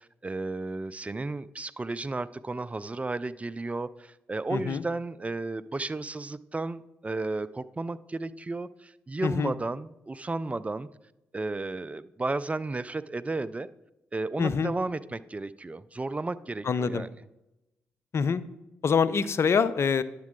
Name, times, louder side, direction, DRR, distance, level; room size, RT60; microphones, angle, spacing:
voice 1, 0.0-10.9 11.3-13.7 14.1-17.1, right 3 dB, 25° right, 16 dB, 0.4 m, -33 dB
voice 2, 4.5-4.8 9.2-9.5 14.4-14.7 16.7-17.1 18.1-18.4 18.8-20.0, left 6 dB, 55° left, 15 dB, 0.5 m, -25 dB
10.5 x 7.4 x 3.7 m, 0.92 s
hypercardioid pair, 45°, 5 cm